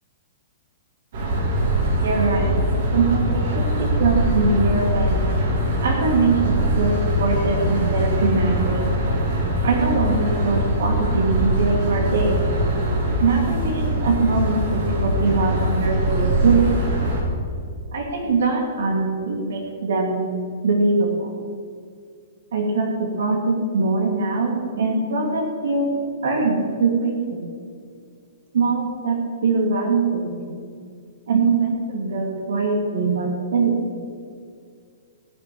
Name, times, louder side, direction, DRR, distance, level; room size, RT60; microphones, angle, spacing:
sound 1, 1.1-17.2, right 1 dB, 55° right, 3.4 m, -22 dB
voice 1, 2.0-2.6 2.9-5.3 5.8-8.9 9.6-12.4 13.2-16.7 17.9-20.2 20.6-21.3 22.5-27.4 28.5-30.6 31.3-33.9, right 3 dB, 80° right, 1 dB, 2.8 m, -22 dB
17.0 x 6.5 x 6.2 m, 2.3 s
hypercardioid pair, 150°, 0 cm